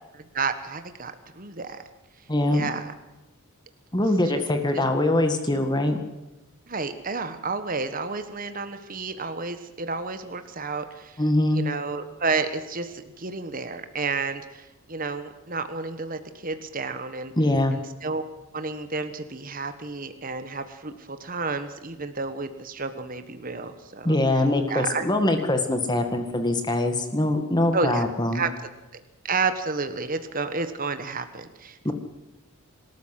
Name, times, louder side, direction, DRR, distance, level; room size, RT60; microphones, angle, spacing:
voice 1, 0.3-1.8 2.5-2.9 4.3-4.4 4.7-4.8 6.7-11.2 11.5-17.3 17.7-18.3 18.5-24.2 24.7-25.1 27.7-28.5 28.9-31.9, right 4 dB, 40° right, 9 dB, 1.4 m, -31 dB
voice 2, 2.3-2.7 3.9-6.0 11.2-11.6 17.4-17.8 24.0-28.4 31.8-31.9, left 1 dB, 20° left, 6 dB, 1.7 m, -23 dB
25.0 x 13.5 x 7.7 m, 1.0 s
head